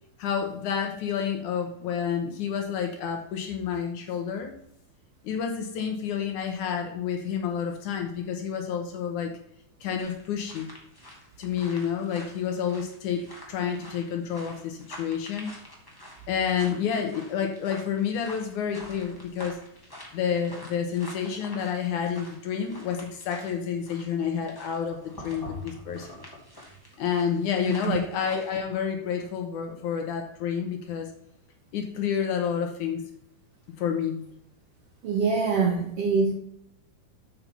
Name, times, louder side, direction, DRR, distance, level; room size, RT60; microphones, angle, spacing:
voice 1, 0.2-4.5 5.2-9.3 9.8-10.7 11.4-15.5 16.3-19.6 20.1-26.1 27.0-31.1 31.7-33.0 33.8-34.2, left 7 dB, 70° left, 3 dB, 2.1 m, -29 dB
sound 1, 10.0-23.5 23.8-28.6, left 1 dB, 25° left, 0.5 m, -46 dB
voice 2, 35.0-36.3, right 5 dB, 80° right, 1 dB, 1.3 m, -24 dB
7.5 x 5.7 x 5.6 m, 0.74 s
omnidirectional pair, 4.3 m